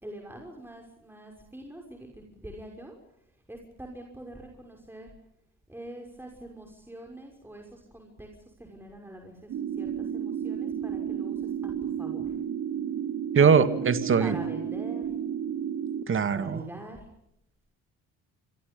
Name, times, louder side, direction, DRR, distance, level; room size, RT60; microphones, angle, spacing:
voice 1, 0.0-3.0 3.5-5.1 5.7-12.3 13.4-13.7 14.2-15.1 16.3-17.0, right 1 dB, 5° right, 1 dB, 5.9 m, -44 dB
sound 1, 9.5-16.0, right 8 dB, 65° right, 2.6 m, -32 dB
voice 2, 13.3-14.3 16.1-16.6, right 6 dB, 40° right, 11 dB, 2.2 m, -21 dB
27.0 x 25.0 x 5.4 m, 0.78 s
cardioid pair, 85°, 31 cm